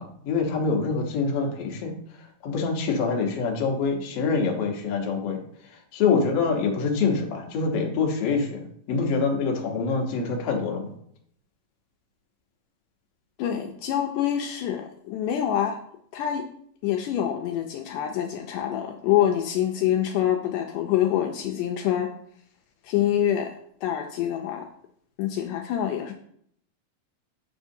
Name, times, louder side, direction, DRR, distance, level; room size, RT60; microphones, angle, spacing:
voice 1, 0.0-1.9 2.2-5.4 5.7-10.9, left 4 dB, 65° left, 1 dB, 1.6 m, -25 dB
voice 2, 13.4-15.8 16.1-16.5 16.8-22.1 22.8-23.5 23.8-24.7 25.2-26.1, left 11 dB, 80° left, 3 dB, 2.0 m, -26 dB
6.8 x 6.1 x 2.7 m, 0.66 s
omnidirectional pair, 3.9 m